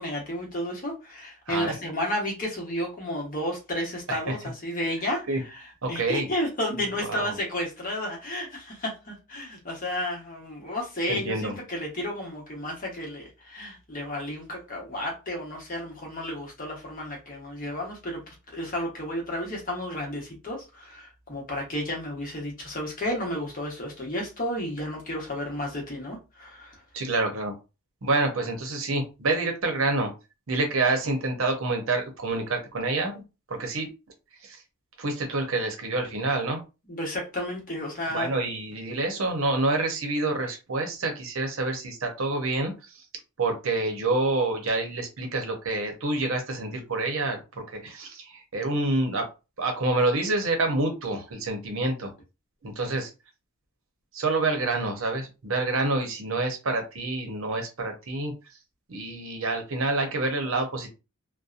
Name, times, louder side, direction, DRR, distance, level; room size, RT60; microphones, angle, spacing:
voice 1, 0.0-5.2 5.5-5.6 5.9-18.2 18.5-26.8 36.9-38.3, left 1 dB, 40° left, 0.9 m, -32 dB
voice 2, 1.5-1.8 4.1-4.4 5.3-5.4 5.8-6.3 6.9-7.4 11.1-11.6 26.9-27.5 28.0-30.1 30.5-33.2 33.5-33.9 34.4-34.6 35.0-36.6 38.1-43.0 43.4-49.3 49.6-52.1 52.6-53.1 54.1-58.3 58.9-60.9, right 2 dB, 65° right, 0.7 m, -27 dB
2.7 x 2.1 x 2.4 m
head